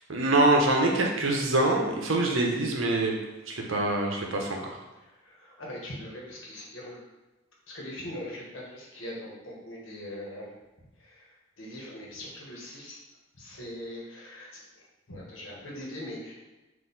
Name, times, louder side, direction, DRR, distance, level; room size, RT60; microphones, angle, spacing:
voice 1, 0.1-3.1 3.5-4.6, right 2 dB, 75° right, 0 dB, 0.7 m, -24 dB
voice 2, 5.0-7.0 7.7-10.5 11.0-13.0 13.4-16.3, left 1 dB, 75° left, -3 dB, 1.2 m, -41 dB
4.3 x 2.6 x 3.9 m, 1.1 s
head